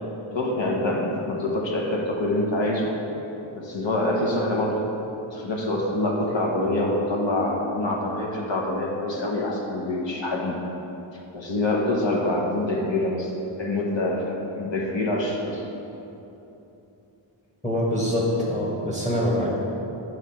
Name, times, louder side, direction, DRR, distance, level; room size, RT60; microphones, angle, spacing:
voice 1, 0.3-3.0 3.5-4.8 5.1-10.6 11.3-13.3 13.6-15.7, left 1 dB, 65° left, -1 dB, 1.0 m, -25 dB
voice 2, 17.6-19.5, left 1 dB, 15° left, -5 dB, 1.2 m, -24 dB
8.7 x 3.2 x 5.7 m, 3.0 s
wide cardioid pair, 80°, 49 cm